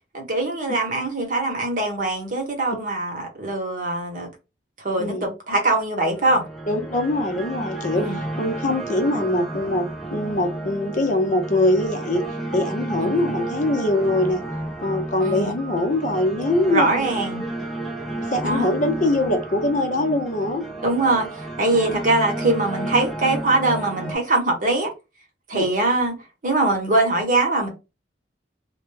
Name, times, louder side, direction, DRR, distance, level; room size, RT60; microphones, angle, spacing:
voice 1, 0.1-4.3 4.8-6.4 7.9-8.2 13.0-13.1 15.2-15.6 16.7-17.4 18.4-18.7 20.8-21.3 21.6-24.9 25.5-26.2 26.4-27.7, right 2 dB, 50° right, 1.0 m, -22 dB
voice 2, 5.0-5.3 6.7-8.1 8.4-12.2 12.5-14.4 14.8-17.1 18.2-20.7 21.8-22.0 25.5-25.7, left 1 dB, 45° left, 0.7 m, -23 dB
sound 1, 6.1-24.1, right 2 dB, ahead, 0.6 m, -32 dB
2.2 x 2.1 x 3.2 m
head